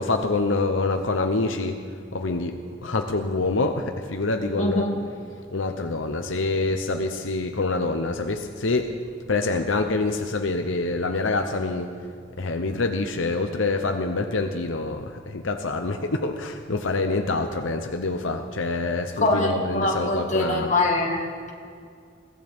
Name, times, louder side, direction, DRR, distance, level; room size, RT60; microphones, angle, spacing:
voice 1, 0.0-1.8 2.1-2.6 2.8-4.9 5.5-8.9 9.3-11.9 12.4-20.7, left 3 dB, 85° left, 5 dB, 0.8 m, -26 dB
voice 2, 4.6-4.9 19.2-21.5, left 2 dB, 40° left, 0 dB, 2.0 m, -24 dB
22.5 x 16.5 x 3.6 m, 2.2 s
head